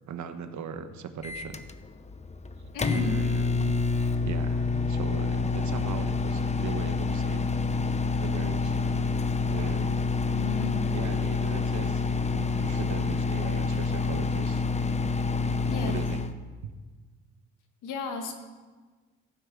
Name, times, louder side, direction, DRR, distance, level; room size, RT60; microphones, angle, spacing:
voice 1, 0.1-1.6 2.9-3.8 4.2-7.5 8.2-8.8 9.5-10.0 10.9-14.6 15.8-16.2 16.6-16.7, right 7 dB, 70° right, 8 dB, 1.2 m, -39 dB
Microwave oven, 1.2-16.3, left 4 dB, 20° left, 0.8 m, -27 dB
voice 2, 2.7-3.2 10.3-10.8 15.7-16.0 17.8-18.3, left 5 dB, 85° left, 4 dB, 1.8 m, -33 dB
15.0 x 6.1 x 7.5 m, 1.4 s
cardioid pair, 90°, 30 cm